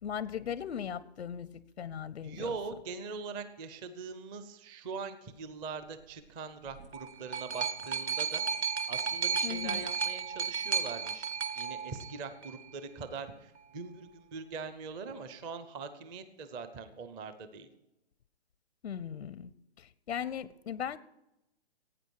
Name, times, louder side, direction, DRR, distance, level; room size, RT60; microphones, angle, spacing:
voice 1, 0.0-2.6 9.4-9.9 18.8-19.5 19.8-21.0, left 8 dB, 85° left, 17 dB, 0.7 m, -38 dB
voice 2, 2.2-8.4 8.9-11.3 11.5-17.7, right 5 dB, 15° right, 11 dB, 0.6 m, -42 dB
sound 1, 6.7-12.7 13.6-13.7, right 6 dB, 85° right, 1.2 m, -34 dB
17.0 x 9.1 x 4.7 m, 0.90 s
hypercardioid pair, 155°, 32 cm